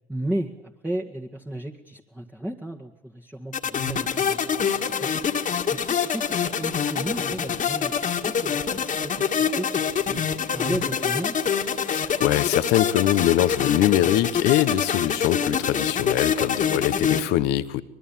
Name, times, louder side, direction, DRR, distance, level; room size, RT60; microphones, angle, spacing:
voice 1, 0.1-4.4 5.0-5.3 5.7-7.9 8.2-9.3 9.6-9.7 10.1-11.4, right 1 dB, 10° right, -1 dB, 1.9 m, -33 dB
sound 1, 3.5-17.2, left 7 dB, 50° left, 2.1 m, -25 dB
voice 2, 11.9-17.8, left 14 dB, 75° left, 14 dB, 1.1 m, -23 dB
24.5 x 21.5 x 7.4 m, 0.86 s
hypercardioid pair, 60°, 17 cm